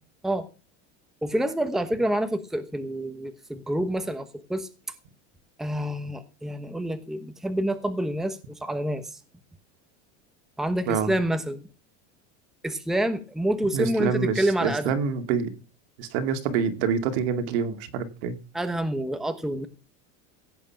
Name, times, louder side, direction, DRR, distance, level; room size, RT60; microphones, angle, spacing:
voice 1, 1.2-4.7 5.6-9.2 10.6-11.6 12.6-15.0 18.5-19.7, right 1 dB, ahead, 1.1 m, -27 dB
voice 2, 13.7-15.5 16.0-18.4, right 6 dB, 70° right, 2.5 m, -26 dB
16.5 x 8.6 x 5.9 m
supercardioid pair, 155°, 34 cm